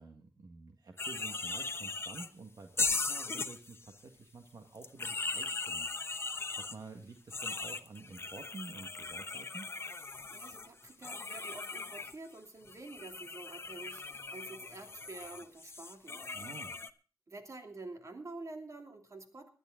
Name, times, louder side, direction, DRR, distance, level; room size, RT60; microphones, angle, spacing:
voice 1, 0.0-9.7 16.3-16.7, right 3 dB, 65° right, 4 dB, 1.7 m, -50 dB
sound 1, 1.0-2.3 2.8-3.9 4.8-6.8 7.3-12.1 12.7-16.9, left 3 dB, 35° left, 0.8 m, -38 dB
voice 2, 10.3-16.5 17.3-19.5, right 2 dB, 45° right, 5 dB, 2.7 m, -48 dB
19.5 x 12.0 x 3.8 m, 0.36 s
wide cardioid pair, 95°, 7 cm